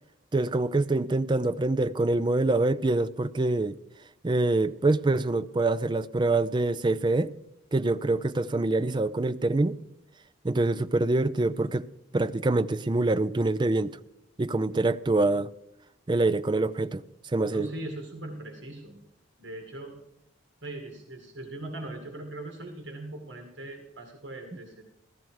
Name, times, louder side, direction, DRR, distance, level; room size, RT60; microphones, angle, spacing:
voice 1, 0.3-3.8 4.2-7.3 7.7-9.8 10.4-11.9 12.1-14.0 14.4-15.5 16.1-17.0 17.3-17.7, right 2 dB, 25° right, 0.4 m, -25 dB
voice 2, 17.5-19.0 19.4-20.0 20.6-24.8, right 1 dB, 65° right, 2.0 m, -40 dB
15.5 x 13.5 x 4.7 m
head